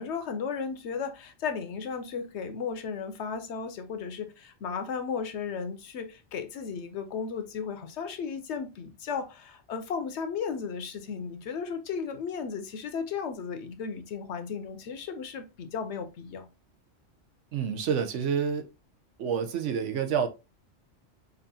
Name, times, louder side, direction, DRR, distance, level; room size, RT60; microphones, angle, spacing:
voice 1, 0.0-16.5, left 6 dB, 70° left, 0.9 m, -35 dB
voice 2, 17.5-18.6 19.2-20.3, right 7 dB, 80° right, 1.0 m, -28 dB
5.3 x 2.5 x 2.6 m
omnidirectional pair, 1.2 m